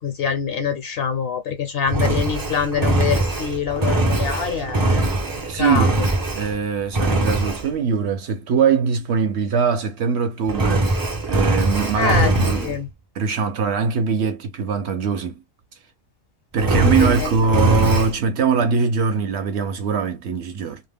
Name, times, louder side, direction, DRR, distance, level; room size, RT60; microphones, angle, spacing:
voice 1, 0.0-5.0 5.5-6.1 11.9-12.9 17.0-17.3, left 6 dB, 60° left, 0.7 m, -25 dB
Engine, 1.9-6.6 6.9-7.7 10.5-12.8 16.6-18.1, right 2 dB, 30° right, 0.4 m, -21 dB
voice 2, 5.4-5.9 6.3-10.9 11.3-12.8 13.2-15.4 16.5-20.8, right 5 dB, 65° right, 0.8 m, -22 dB
2.3 x 2.1 x 3.3 m
omnidirectional pair, 1.3 m